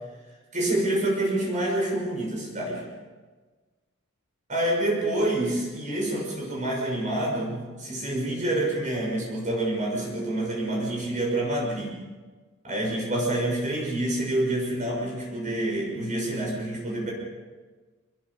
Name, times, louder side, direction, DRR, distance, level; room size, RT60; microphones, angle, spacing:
voice 1, 0.5-2.8 4.5-12.0 12.6-17.1, right 1 dB, 35° right, -2 dB, 6.4 m, -27 dB
25.5 x 20.5 x 5.7 m, 1.3 s
head